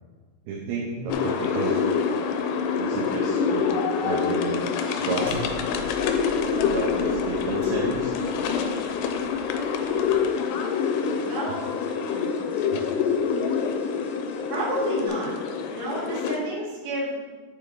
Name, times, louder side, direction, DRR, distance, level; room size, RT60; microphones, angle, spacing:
voice 1, 0.5-1.8 2.8-3.7 4.0-5.4 6.6-8.1 12.7-12.9, right 4 dB, 80° right, -2 dB, 2.3 m, -32 dB
sound 1, 1.1-16.4, left 6 dB, 85° left, 2.4 m, -26 dB
sound 2, 5.2-10.3, right 2 dB, 65° right, 2.9 m, -42 dB
Alarm, 9.8-15.1, left 8 dB, 65° left, 1.1 m, -45 dB
voice 2, 11.2-12.3 14.5-15.3 15.7-17.2, right 1 dB, 40° right, -7 dB, 2.3 m, -31 dB
10.5 x 4.5 x 3.7 m, 1.4 s
omnidirectional pair, 5.3 m